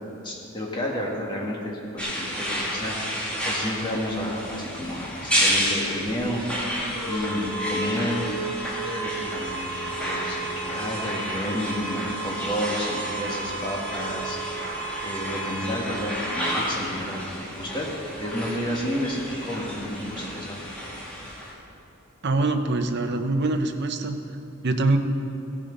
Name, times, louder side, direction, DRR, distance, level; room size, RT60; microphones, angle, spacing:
voice 1, 0.2-3.0 3.4-6.4 7.0-8.2 8.8-14.4 15.0-17.3 17.6-17.9 18.2-20.5, equal, 20° left, -3 dB, 2.0 m, -31 dB
sound 1, 2.0-21.5, right 1 dB, 5° left, 2.1 m, -30 dB
voice 2, 22.2-24.2 24.6-25.0, right 2 dB, 50° right, 6 dB, 0.8 m, -24 dB
16.5 x 7.5 x 5.4 m, 2.9 s
head